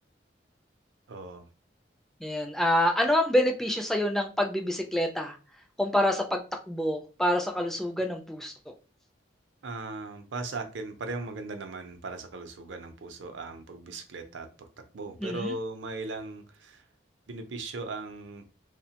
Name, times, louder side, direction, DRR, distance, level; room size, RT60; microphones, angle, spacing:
voice 1, 1.1-1.4 9.6-14.5 14.9-16.8 17.3-18.4, right 3 dB, 85° right, 6 dB, 0.5 m, -38 dB
voice 2, 2.2-5.4 5.8-8.7 15.2-15.5, left 1 dB, ahead, 3 dB, 0.3 m, -27 dB
2.8 x 2.1 x 2.8 m, 0.34 s
head